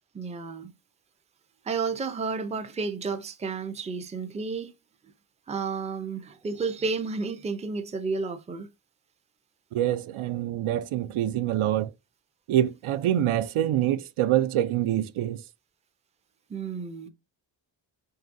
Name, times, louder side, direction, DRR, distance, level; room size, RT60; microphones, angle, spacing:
voice 1, 0.1-0.7 1.6-4.7 5.5-8.7 16.5-17.1, right 4 dB, 15° right, 0.4 m, -31 dB
voice 2, 9.7-11.9 12.5-15.4, right 12 dB, 85° right, 0.6 m, -25 dB
4.8 x 3.1 x 2.6 m
wide cardioid pair, 155°, 47 cm